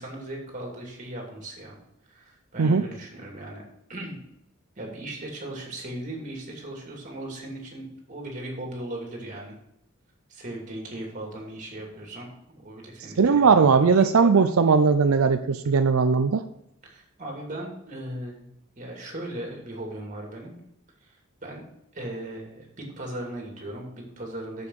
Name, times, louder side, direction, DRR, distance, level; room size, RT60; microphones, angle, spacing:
voice 1, 0.0-1.8 2.1-3.6 3.9-4.2 4.8-9.6 10.3-14.1 16.8-18.5 18.8-20.5 21.0-21.6 21.9-24.7, right 1 dB, 35° right, 0 dB, 2.7 m, -38 dB
voice 2, 13.2-16.4, right 5 dB, 85° right, 9 dB, 0.5 m, -19 dB
7.1 x 6.8 x 6.4 m, 0.78 s
head